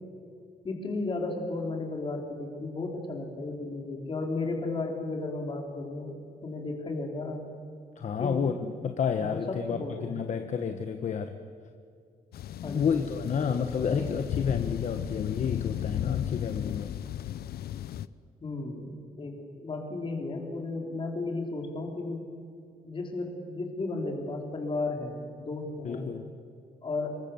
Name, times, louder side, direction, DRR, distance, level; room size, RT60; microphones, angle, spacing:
voice 1, 0.6-6.2 6.4-7.4 8.2-8.4 9.2-10.2 12.6-13.1 13.4-13.5 13.9-14.1 18.4-22.2 22.8-26.1 26.8-27.2, left 3 dB, 35° left, 2 dB, 3.8 m, -34 dB
voice 2, 8.0-11.4 12.6-16.9 25.8-26.3, left 7 dB, 50° left, 7 dB, 1.2 m, -30 dB
sound 1, 12.3-18.1, left 11 dB, 85° left, 0.7 m, -34 dB
26.5 x 22.5 x 7.1 m, 2.3 s
wide cardioid pair, 170°, 16 cm